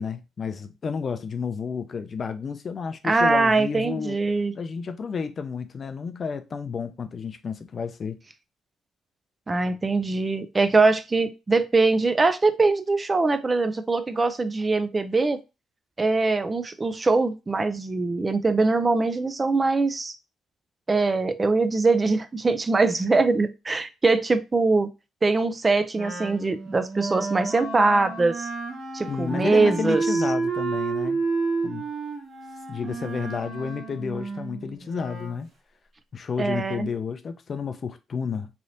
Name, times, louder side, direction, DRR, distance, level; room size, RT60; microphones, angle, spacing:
voice 1, 0.0-4.2 4.5-8.2 29.1-31.2 31.6-31.9 32.7-35.5 36.1-38.5, left 6 dB, 45° left, 0.4 m, -31 dB
voice 2, 3.0-4.5 9.5-15.4 16.0-20.1 20.9-24.9 25.2-28.5 28.9-30.0 36.4-36.9, right 3 dB, 25° right, 0.3 m, -22 dB
Wind instrument woodwind instrument, 25.9-35.4, right 4 dB, 55° right, 1.0 m, -30 dB
3.2 x 2.7 x 2.6 m
cardioid pair, 90°, 0 cm